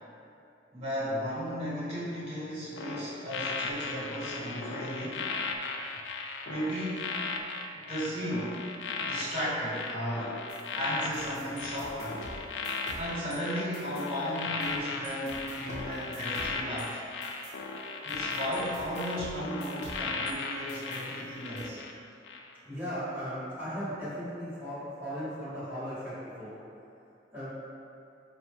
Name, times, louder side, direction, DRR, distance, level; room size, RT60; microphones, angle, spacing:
voice 1, 0.7-5.2 6.5-7.1 7.7-8.6 9.0-10.4 10.7-12.3 13.0-17.0 18.0-21.8, equal, 40° right, -10 dB, 1.3 m, -35 dB
sound 1, 2.8-21.9 22.2-22.5, left 4 dB, 85° left, 0.3 m, -37 dB
sound 2, 10.5-13.4 13.7-14.8 15.0-20.3 20.7-21.6, equal, 40° left, 0.9 m, -47 dB
voice 2, 22.6-26.6 27.3-27.5, equal, 10° right, -13 dB, 1.2 m, -37 dB
5.2 x 2.2 x 3.0 m, 2.7 s
head